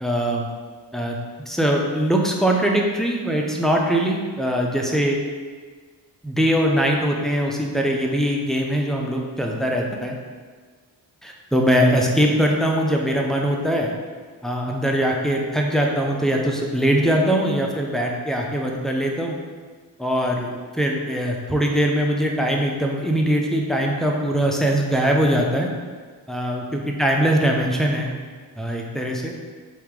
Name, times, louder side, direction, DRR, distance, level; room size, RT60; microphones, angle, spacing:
voice 1, 0.0-0.5 0.9-1.2 1.5-5.2 6.2-10.1 11.2-13.9 14.4-19.4 20.0-25.7 26.3-28.1 28.6-29.3, equal, ahead, -1 dB, 0.7 m, -21 dB
4.9 x 2.9 x 3.6 m, 1.5 s
cardioid pair, 70°, 42 cm